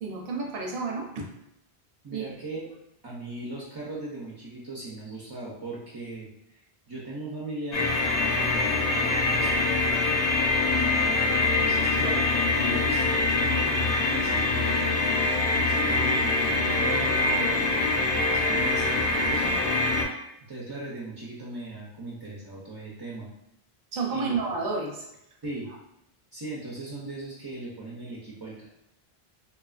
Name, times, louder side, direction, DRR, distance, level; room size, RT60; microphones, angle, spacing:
voice 1, 0.0-1.3 2.1-2.3 23.9-25.1, right 4 dB, 70° right, 0 dB, 0.7 m, -30 dB
voice 2, 2.0-2.7 3.0-6.3 6.9-7.9 8.3-9.6 10.7-15.0 15.6-19.6 20.5-23.3 24.1-24.3 25.4-25.7 26.3-28.7, right 2 dB, 40° right, -6 dB, 0.3 m, -38 dB
sound 1, 7.7-20.0, left 3 dB, 65° left, 0.7 m, -24 dB
2.7 x 2.3 x 2.3 m, 0.82 s
omnidirectional pair, 1.0 m